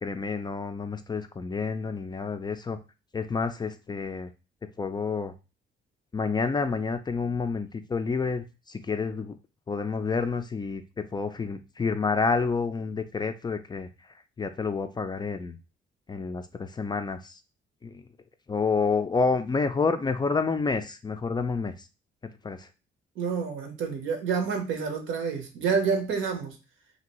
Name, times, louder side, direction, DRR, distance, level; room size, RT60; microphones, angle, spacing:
voice 1, 0.0-2.8 3.1-4.3 4.8-5.3 6.1-9.3 9.7-13.9 14.4-15.6 16.1-17.4 17.8-18.0 18.5-21.9 22.4-22.7, left 4 dB, 20° left, 8 dB, 0.3 m, -29 dB
voice 2, 23.2-26.6, right 5 dB, 80° right, 5 dB, 0.8 m, -28 dB
2.8 x 2.5 x 2.9 m, 0.30 s
cardioid pair, 90°, 20 cm